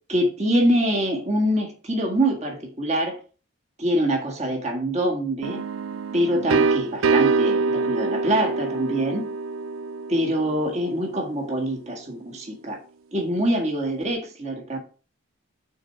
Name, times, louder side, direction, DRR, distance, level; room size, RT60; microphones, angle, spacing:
voice 1, 0.1-3.2 3.8-5.6 6.1-9.3 10.1-12.8 13.1-14.8, right 1 dB, 30° right, 2 dB, 1.7 m, -24 dB
sound 1, 5.4-11.1, right 4 dB, 70° right, 0.3 m, -25 dB
6.4 x 4.5 x 6.0 m, 0.37 s
head